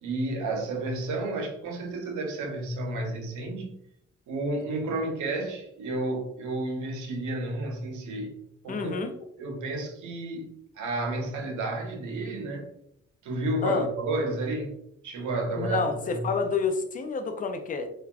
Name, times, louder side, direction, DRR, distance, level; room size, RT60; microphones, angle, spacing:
voice 1, 0.0-3.7 4.3-8.4 8.6-9.0 9.4-12.7 13.2-16.3, right 2 dB, 75° right, 0.8 m, -31 dB
voice 2, 8.7-9.1 13.6-13.9 15.6-17.9, left 4 dB, 30° left, 0.4 m, -28 dB
3.3 x 2.3 x 2.3 m
cardioid pair, 90°, 30 cm